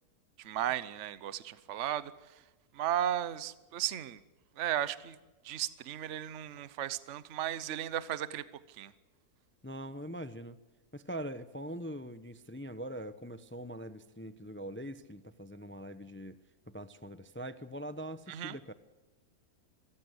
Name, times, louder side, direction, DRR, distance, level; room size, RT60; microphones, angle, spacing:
voice 1, 0.4-2.4 2.7-4.2 4.6-5.2 5.4-8.9 18.3-18.6, right 11 dB, 55° right, 16 dB, 1.1 m, -35 dB
voice 2, 9.6-10.6 10.9-16.4 16.7-18.7, right 1 dB, 15° left, 13 dB, 0.4 m, -42 dB
24.0 x 15.5 x 8.0 m, 1.1 s
omnidirectional pair, 1.7 m